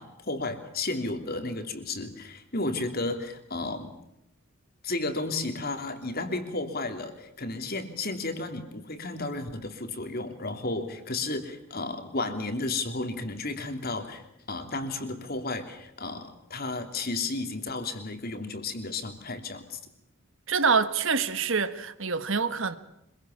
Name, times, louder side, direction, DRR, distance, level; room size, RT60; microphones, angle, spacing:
voice 1, 0.0-3.9 4.8-19.8, left 2 dB, 45° left, 3.2 m, -33 dB
voice 2, 20.5-22.8, right 5 dB, 60° right, 1.4 m, -26 dB
25.5 x 23.0 x 7.2 m
head